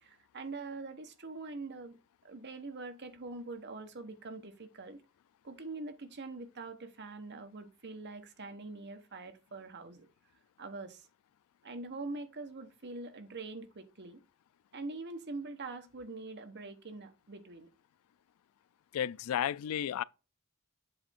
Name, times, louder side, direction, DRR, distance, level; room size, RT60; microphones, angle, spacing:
voice 1, 0.0-5.0 5.4-10.1 10.6-11.1 11.6-14.2 14.7-17.7, right 3 dB, 55° right, 1.1 m, -44 dB
voice 2, 18.9-20.0, left 10 dB, 90° left, 0.3 m, -32 dB
7.7 x 3.4 x 4.2 m
head